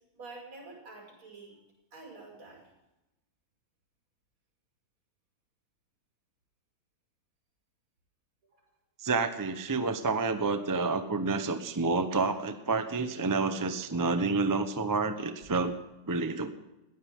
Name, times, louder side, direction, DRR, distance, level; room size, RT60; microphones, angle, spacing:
voice 1, 0.1-1.6 1.9-2.7 8.5-8.7 15.5-15.6, right 3 dB, 80° right, -2 dB, 6.9 m, -48 dB
voice 2, 9.0-15.7 16.1-16.5, right 4 dB, 20° right, 8 dB, 0.5 m, -29 dB
20.5 x 15.0 x 3.7 m, 0.95 s
omnidirectional pair, 2.3 m